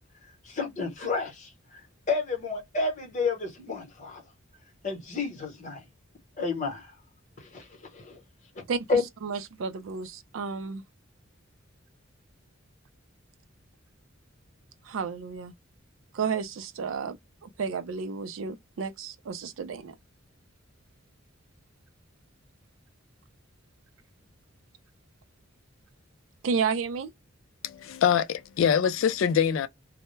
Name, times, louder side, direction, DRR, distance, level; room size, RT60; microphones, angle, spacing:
voice 1, 0.4-1.8 2.1-4.2 4.8-5.8 6.4-7.0 7.4-8.2 8.5-9.0, left 4 dB, 40° left, 0.9 m, -31 dB
voice 2, 8.7-10.8 14.8-15.5 16.1-17.2 17.4-19.9 26.4-27.1, right 5 dB, 80° right, 0.4 m, -32 dB
voice 3, 27.6-29.7, left 8 dB, 70° left, 0.3 m, -24 dB
2.1 x 2.0 x 3.0 m
head